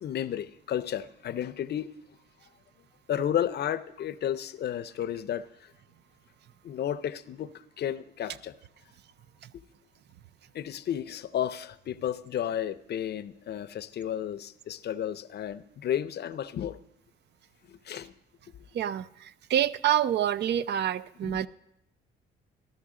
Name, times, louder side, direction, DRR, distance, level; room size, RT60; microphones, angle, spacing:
voice 1, 0.0-1.9 3.1-5.5 6.6-7.5 7.8-8.5 10.5-16.8 17.9-18.1 21.2-21.4, left 10 dB, 55° left, 14 dB, 0.6 m, -32 dB
voice 2, 18.7-19.1 19.5-21.5, right 11 dB, 60° right, 16 dB, 0.5 m, -26 dB
13.0 x 13.0 x 3.7 m, 0.78 s
cardioid pair, 90°, 20 cm